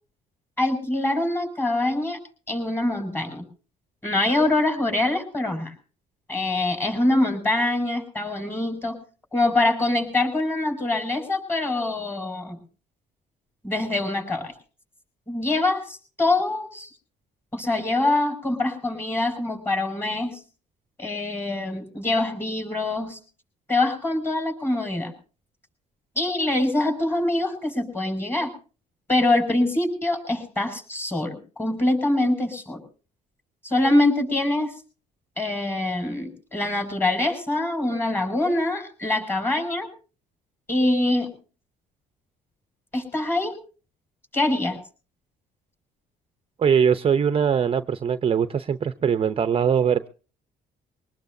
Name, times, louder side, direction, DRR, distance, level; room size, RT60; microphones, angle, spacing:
voice 1, 0.6-2.2 2.5-3.4 4.0-5.7 6.3-9.0 9.3-12.6 13.6-14.5 15.3-16.9 17.5-20.4 21.0-23.2 23.7-25.1 26.2-28.5 29.1-32.8 33.6-34.7 35.4-39.9 40.7-41.3 42.9-43.6 44.3-44.8, left 2 dB, 15° left, 5 dB, 5.9 m, -24 dB
voice 2, 46.6-50.1, right 7 dB, 35° right, 11 dB, 0.7 m, -21 dB
23.0 x 19.0 x 2.7 m, 0.38 s
cardioid pair, 110°, 17 cm